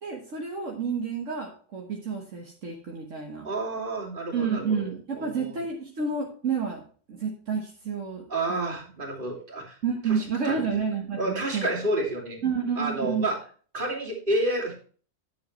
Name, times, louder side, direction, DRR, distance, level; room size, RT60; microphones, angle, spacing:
voice 1, 0.0-3.5 4.3-6.8 7.1-8.8 9.8-11.7 12.4-13.3, right 5 dB, 70° right, 0 dB, 1.7 m, -30 dB
voice 2, 3.4-4.9 5.1-5.6 8.3-9.8 10.1-10.5 11.2-12.4 12.8-13.4 13.7-14.7, right 1 dB, 40° right, -2 dB, 2.8 m, -29 dB
10.0 x 7.6 x 3.1 m, 0.42 s
omnidirectional pair, 1.3 m